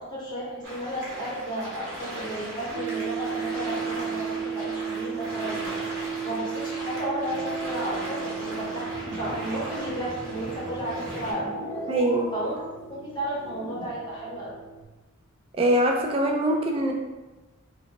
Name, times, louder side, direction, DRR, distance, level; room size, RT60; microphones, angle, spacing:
voice 1, 0.1-11.5 12.3-12.6 12.9-14.5, right 1 dB, 20° left, -7 dB, 0.8 m, -33 dB
sound 1, 0.6-11.3, right 1 dB, 65° right, 0.9 m, -38 dB
sound 2, 2.7-14.8, right 7 dB, 90° right, 0.5 m, -35 dB
sound 3, 7.3-13.9, left 1 dB, 65° left, 0.5 m, -40 dB
voice 2, 11.9-12.3 15.6-16.9, right 1 dB, 25° right, 1 dB, 0.3 m, -23 dB
2.7 x 2.0 x 2.9 m, 1.1 s
head